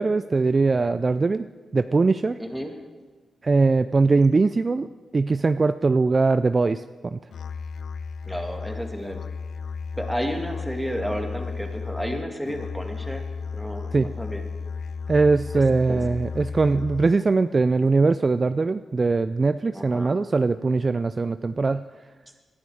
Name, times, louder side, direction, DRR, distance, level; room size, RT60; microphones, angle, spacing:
voice 1, 0.0-1.5 1.7-2.4 3.4-4.9 5.1-7.2 13.9-14.1 15.1-21.8, right 3 dB, 40° right, 12 dB, 0.4 m, -21 dB
voice 2, 2.4-2.7 8.3-9.2 10.0-13.2 13.5-14.4 15.9-16.0 19.7-20.2, equal, ahead, 3 dB, 2.2 m, -31 dB
Musical instrument, 7.3-17.3, left 5 dB, 75° left, 0.4 m, -34 dB
19.5 x 11.0 x 4.9 m, 1.4 s
cardioid pair, 65°, 0 cm